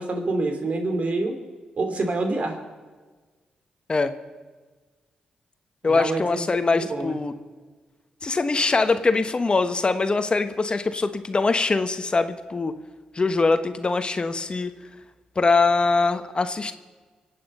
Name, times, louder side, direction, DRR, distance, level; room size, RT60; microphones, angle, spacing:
voice 1, 0.0-1.3 1.8-2.6 5.8-7.1, right 2 dB, 55° right, 5 dB, 2.9 m, -27 dB
voice 2, 5.8-7.3 8.2-12.7 13.1-14.7 15.4-16.7, left 3 dB, 40° left, 10 dB, 1.1 m, -22 dB
25.0 x 8.7 x 5.5 m, 1.4 s
supercardioid pair, 45°, 3 cm